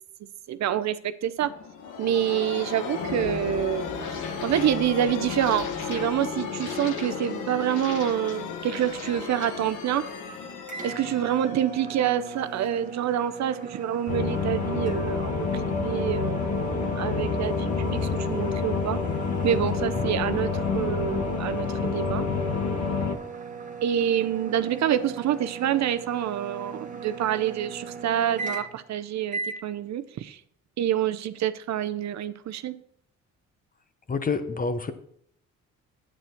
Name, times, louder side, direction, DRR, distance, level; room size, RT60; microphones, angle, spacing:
voice 1, 0.5-1.5 2.0-10.1 10.8-16.6 17.0-19.0 19.4-22.3 23.8-30.4 30.8-32.8, right 10 dB, 65° right, 11 dB, 0.7 m, -27 dB
sound 1, 1.4-12.9, left 5 dB, 85° left, 1.4 m, -34 dB
sound 2, 10.7-28.9 29.3-29.6, right 5 dB, 25° right, 1.6 m, -38 dB
sound 3, 14.1-23.2, left 5 dB, 60° left, 1.4 m, -28 dB
voice 2, 34.1-34.9, left 4 dB, 30° left, 10 dB, 0.9 m, -28 dB
8.9 x 8.6 x 4.4 m, 0.67 s
cardioid pair, 90°, 30 cm